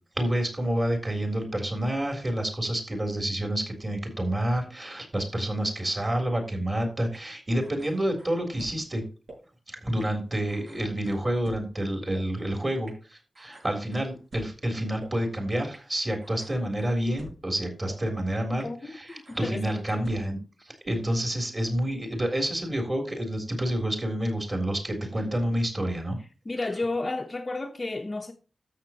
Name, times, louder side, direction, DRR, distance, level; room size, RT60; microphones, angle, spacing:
voice 1, 0.2-9.0 9.7-26.2, right 1 dB, 25° right, 3.7 m, -29 dB
sound 1, 7.1-7.2 7.6-8.8 9.3-9.4 10.0-10.1 10.5-11.6 12.1-12.2 12.9-13.0 13.3-14.5 15.0-15.1 15.7-15.8 16.2-17.4 17.9-18.0 18.6-18.7 19.1-20.1, right 1 dB, 60° right, 6.4 m, -47 dB
voice 2, 19.4-20.0 26.4-28.3, left 2 dB, 30° left, 0.9 m, -31 dB
13.0 x 7.4 x 3.0 m
wide cardioid pair, 140°, 0 cm